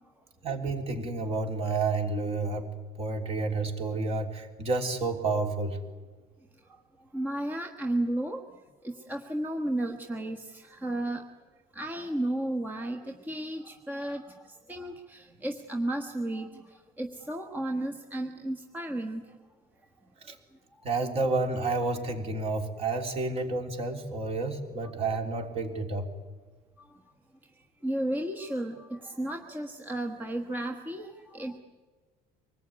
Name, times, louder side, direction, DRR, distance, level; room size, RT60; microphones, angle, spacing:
voice 1, 0.4-2.7 3.0-5.8 20.2-20.4 20.8-26.1, right 3 dB, 35° right, 4 dB, 3.6 m, -30 dB
voice 2, 7.1-8.4 8.8-11.2 11.7-13.0 13.3-14.2 14.7-16.5 17.0-19.2 24.8-24.9 27.8-31.6, right 1 dB, 10° right, 3 dB, 1.4 m, -33 dB
25.0 x 20.0 x 9.7 m, 1.4 s
cardioid pair, 160°, 17 cm